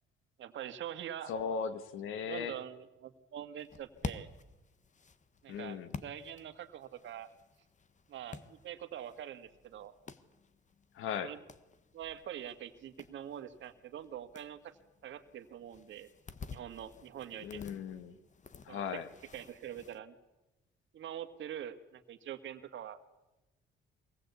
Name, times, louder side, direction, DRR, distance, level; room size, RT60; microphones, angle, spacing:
voice 1, 0.4-1.3 2.3-4.3 5.4-7.3 8.1-9.9 11.2-11.4 11.9-14.7 15.0-16.1 16.5-17.6 18.7-19.0 19.3-20.2 20.9-23.0, right 10 dB, 70° right, 8 dB, 1.9 m, -44 dB
voice 2, 1.3-2.6 5.5-5.9 10.9-11.3 17.4-18.2 18.6-19.1, left 7 dB, 85° left, 11 dB, 1.8 m, -37 dB
sound 1, 3.6-20.0, left 5 dB, 40° left, 1.4 m, -50 dB
24.0 x 18.5 x 8.3 m, 1.0 s
cardioid pair, 90°, 20 cm